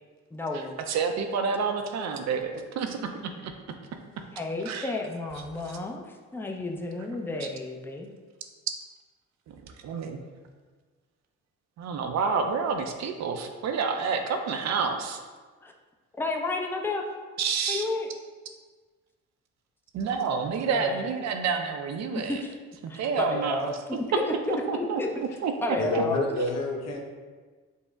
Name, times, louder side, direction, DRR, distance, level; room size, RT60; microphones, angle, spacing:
voice 1, 0.3-0.7 4.3-6.0 6.3-8.1 15.6-15.7 16.2-17.1 17.7-18.1 20.7-21.0 22.1-22.6 22.9-25.2 25.6-26.2, left 2 dB, 5° left, 1 dB, 0.4 m, -31 dB
voice 2, 0.9-3.5 4.7-4.9 9.8-10.2 11.8-15.2 17.4-17.8 19.9-22.4 22.8-23.7 24.7-25.0 25.4-25.5, right 5 dB, 65° right, 5 dB, 0.5 m, -29 dB
voice 3, 25.8-27.0, left 1 dB, 60° left, 0 dB, 0.8 m, -28 dB
5.4 x 2.0 x 3.5 m, 1.4 s
cardioid pair, 90°, 30 cm